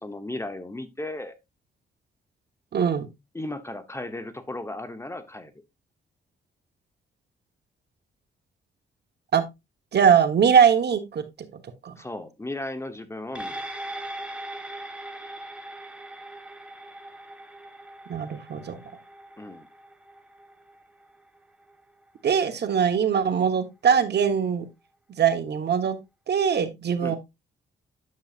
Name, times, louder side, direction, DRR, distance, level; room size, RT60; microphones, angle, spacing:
voice 1, 0.0-1.3 3.3-5.5 12.0-13.6 19.4-19.7 27.0-27.2, left 2 dB, 15° left, 1.0 m, -35 dB
voice 2, 2.7-3.1 9.3-9.4 9.9-11.2 11.8-12.0 18.1-18.8 22.2-24.7 25.2-26.0 26.3-27.2, right 7 dB, 55° right, 1.3 m, -21 dB
sound 1, 13.4-22.0 22.4-22.5, right 1 dB, 5° right, 1.3 m, -40 dB
9.5 x 7.2 x 2.5 m
cardioid pair, 110°, 20 cm